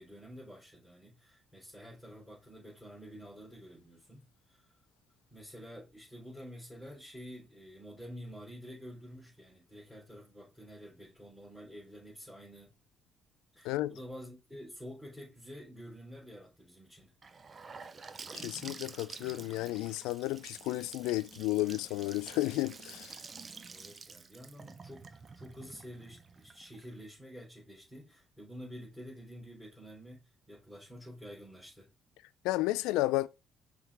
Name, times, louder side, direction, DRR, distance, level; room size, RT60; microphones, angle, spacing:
voice 1, 0.0-4.7 5.3-12.7 13.5-17.1 23.6-31.9, equal, ahead, 3.4 m, -49 dB
Gurgling / Sink (filling or washing) / Bathtub (filling or washing), 17.2-27.0, right 4 dB, 40° right, 0.7 m, -49 dB
voice 2, 18.3-23.2 32.4-33.3, left 18 dB, 85° left, 0.3 m, -32 dB
5.8 x 3.4 x 4.7 m
supercardioid pair, 70°, 0 cm